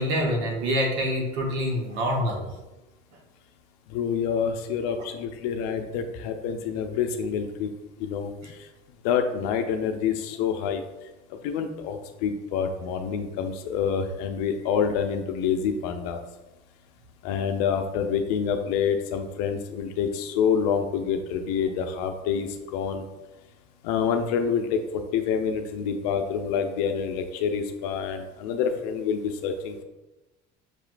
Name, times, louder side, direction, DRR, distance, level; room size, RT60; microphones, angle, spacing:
voice 1, 0.0-2.5, equal, 80° right, 0 dB, 1.1 m, -26 dB
voice 2, 3.9-7.7 8.0-8.3 9.0-10.8 11.4-16.2 17.2-23.0 23.8-24.8 25.1-29.8, left 7 dB, 85° left, 7 dB, 0.5 m, -27 dB
6.1 x 2.9 x 2.5 m, 1.1 s
supercardioid pair, 90°, 20 cm